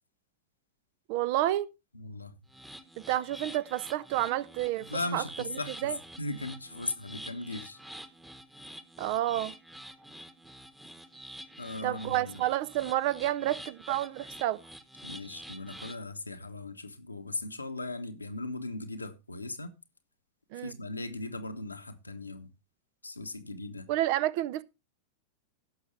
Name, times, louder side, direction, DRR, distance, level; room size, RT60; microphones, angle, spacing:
voice 1, 1.1-1.7 3.0-5.2 5.8-6.0 9.0-9.5 11.8-14.6 20.5-20.8 23.9-24.6, right 14 dB, 45° right, 0.6 m, -30 dB
voice 2, 1.9-2.4 4.8-7.8 11.6-12.4 15.0-19.7 20.6-22.5 23.0-23.9, left 2 dB, 80° left, 1.2 m, -38 dB
sound 1, 2.5-16.0, equal, 5° right, 1.2 m, -47 dB
16.5 x 6.4 x 3.3 m
figure-of-eight pair, 90°, 0 cm